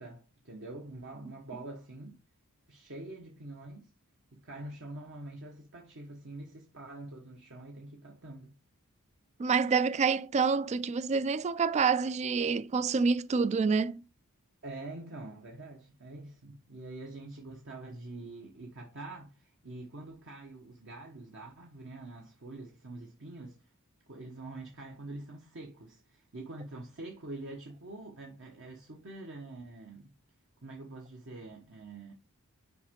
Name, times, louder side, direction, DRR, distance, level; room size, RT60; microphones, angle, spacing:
voice 1, 0.0-2.2 2.7-3.9 4.3-8.6 14.6-23.7 24.1-30.1 30.6-32.1, right 2 dB, 60° right, 1.2 m, -45 dB
voice 2, 9.4-14.0, right 5 dB, 30° right, 0.3 m, -27 dB
5.9 x 5.2 x 3.6 m
head